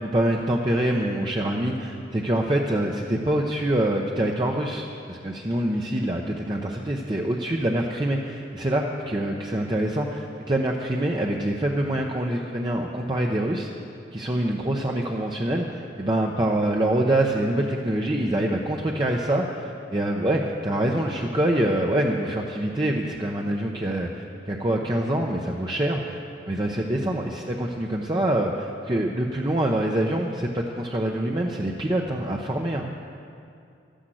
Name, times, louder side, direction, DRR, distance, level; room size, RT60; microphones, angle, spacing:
voice 1, 0.0-13.7 14.1-26.2 26.5-32.9, right 1 dB, 25° right, 0 dB, 0.7 m, -25 dB
12.5 x 10.0 x 7.7 m, 2.5 s
head